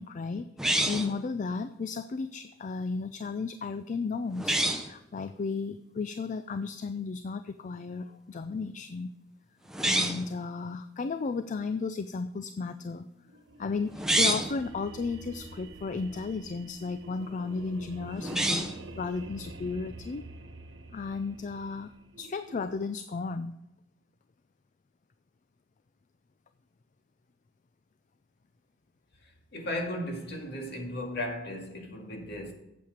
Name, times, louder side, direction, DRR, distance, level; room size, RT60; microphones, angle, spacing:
voice 1, 0.0-9.1 9.8-13.1 13.6-20.2 20.9-23.5, left 4 dB, 40° left, 0.4 m, -34 dB
sound 1, 0.6-1.2 4.4-4.9 9.7-10.3 13.9-14.6 18.2-18.8, right 1 dB, 5° right, 0.7 m, -27 dB
sound 2, 13.3-22.7, right 2 dB, 65° right, 0.9 m, -47 dB
voice 2, 29.2-32.5, left 1 dB, 60° left, 2.0 m, -36 dB
8.6 x 7.4 x 5.0 m
head